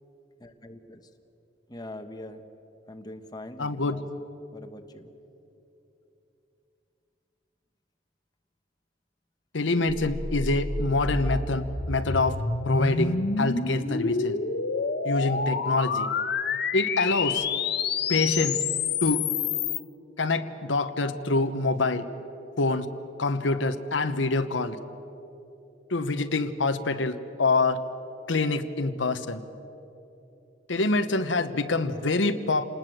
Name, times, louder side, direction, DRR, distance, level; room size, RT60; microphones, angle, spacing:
voice 1, 0.4-1.1 1.7-2.4 2.9-4.0 4.5-5.1, left 1 dB, 20° left, 6 dB, 1.2 m, -42 dB
voice 2, 3.6-4.0 9.5-12.4 12.7-14.4 15.0-16.1 16.7-17.4 18.1-18.6 19.0-19.2 20.2-22.0 22.6-22.9 23.2-24.8 25.9-27.1 27.4-27.8 28.3-29.4 30.7-32.7, left 3 dB, 80° left, 9 dB, 1.1 m, -26 dB
sound 1, 9.9-19.8, left 5 dB, 60° left, 1.3 m, -28 dB
28.0 x 20.0 x 7.9 m, 2.9 s
head